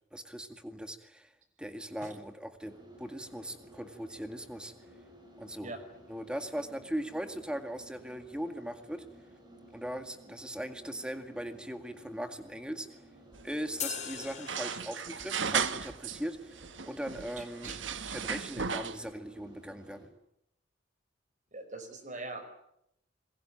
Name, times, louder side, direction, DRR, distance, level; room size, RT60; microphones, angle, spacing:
voice 1, 0.1-1.3 1.6-4.7 5.4-5.7 6.1-9.0 9.7-12.9 13.4-17.7 18.1-20.1, equal, 5° right, 7 dB, 2.0 m, -39 dB
sound 1, 2.6-20.1, equal, 20° right, 7.0 m, -56 dB
sound 2, 13.3-16.2 16.5-19.1, right 6 dB, 75° right, 1.3 m, -36 dB
sound 3, 13.8-15.4, left 9 dB, 35° left, 4.2 m, -40 dB
voice 2, 17.4-18.2 21.5-22.4, right 2 dB, 40° right, 9 dB, 5.2 m, -43 dB
28.0 x 21.5 x 8.9 m, 0.80 s
head